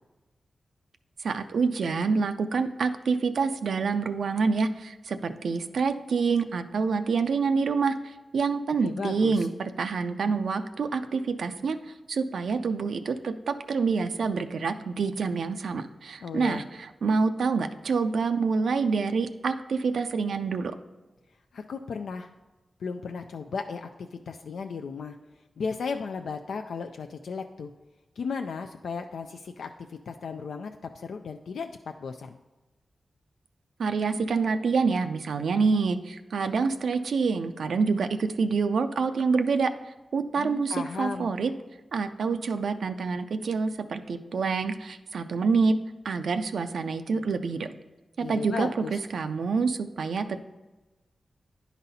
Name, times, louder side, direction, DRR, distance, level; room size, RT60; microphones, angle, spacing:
voice 1, 1.2-20.8 33.8-39.7 40.1-41.5 41.9-45.8 46.0-47.7 48.2-50.4, right 4 dB, 85° right, 8 dB, 0.4 m, -27 dB
voice 2, 8.8-9.5 16.2-16.6 21.5-22.3 22.8-25.2 25.6-27.7 28.2-31.7 32.0-32.4 40.4-41.3 48.2-49.0, left 5 dB, 90° left, 5 dB, 0.3 m, -35 dB
10.0 x 4.0 x 4.1 m, 1.1 s
cardioid pair, 65°, 0 cm